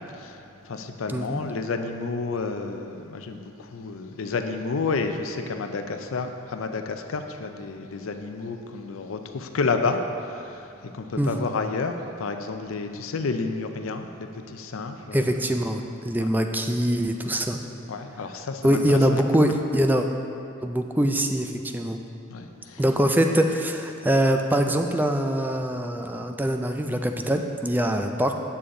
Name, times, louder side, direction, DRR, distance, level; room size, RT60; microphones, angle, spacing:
voice 1, 0.1-15.3 16.2-16.3 17.9-19.0 22.3-22.8 27.8-27.9, left 4 dB, 90° left, 6 dB, 0.5 m, -30 dB
voice 2, 1.1-1.4 11.2-11.4 15.1-17.6 18.6-20.1 20.6-22.0 22.8-28.3, equal, 10° right, 5 dB, 0.4 m, -23 dB
8.4 x 7.0 x 3.8 m, 2.7 s
head